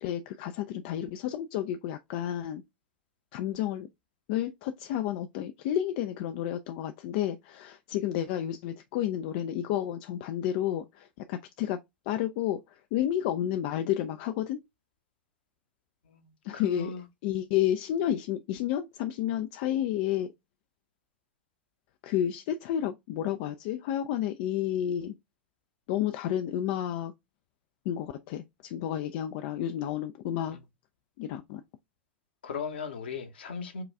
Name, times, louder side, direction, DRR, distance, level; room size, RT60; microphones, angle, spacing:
voice 1, 0.0-2.6 3.3-3.9 4.3-11.8 12.1-14.6 16.4-16.9 17.2-20.3 22.0-25.1 25.9-27.1 27.9-30.6 31.2-31.6, left 11 dB, 50° left, 0.3 m, -31 dB
voice 2, 16.0-17.1 30.5-30.6 32.4-33.8, left 5 dB, 70° left, 1.0 m, -38 dB
4.8 x 2.3 x 3.3 m
figure-of-eight pair, 90°, 6 cm